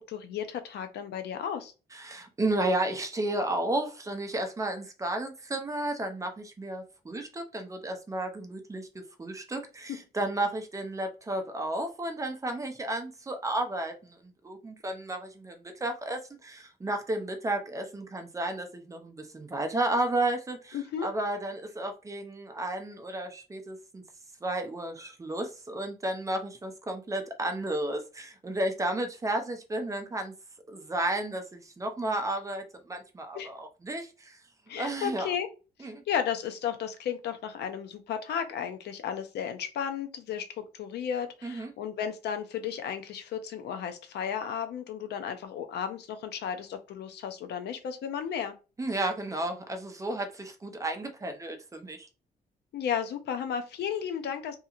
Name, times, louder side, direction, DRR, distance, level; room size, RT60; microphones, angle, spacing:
voice 1, 0.1-1.7 20.7-21.1 33.4-33.5 34.7-35.5 35.8-48.5 52.7-54.6, left 8 dB, 80° left, 0.6 m, -34 dB
voice 2, 1.9-24.0 24.4-30.3 30.7-34.4 34.8-35.3 35.8-36.0 41.4-41.7 48.8-52.1, right 1 dB, 20° right, 0.5 m, -33 dB
2.8 x 2.7 x 2.4 m
cardioid pair, 120°, 17 cm